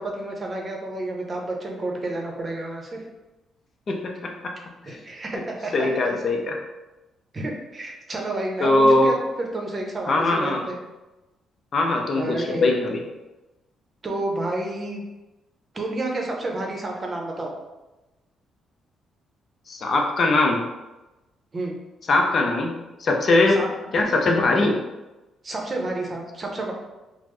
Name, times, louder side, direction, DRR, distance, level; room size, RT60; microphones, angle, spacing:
voice 1, 0.0-3.0 4.8-6.1 7.3-10.7 12.1-12.8 14.0-15.0 15.7-17.5 21.5-21.8 23.5-23.7 25.4-26.7, right 2 dB, 35° right, 0 dB, 0.7 m, -30 dB
voice 2, 3.9-4.5 4.9-5.0 5.7-6.6 8.6-9.1 10.1-10.6 11.7-13.0 19.7-20.6 22.1-22.7 23.0-23.6 23.9-24.8, left 2 dB, 50° left, 1 dB, 0.5 m, -21 dB
3.4 x 2.0 x 3.2 m, 1.1 s
cardioid pair, 90°, 0 cm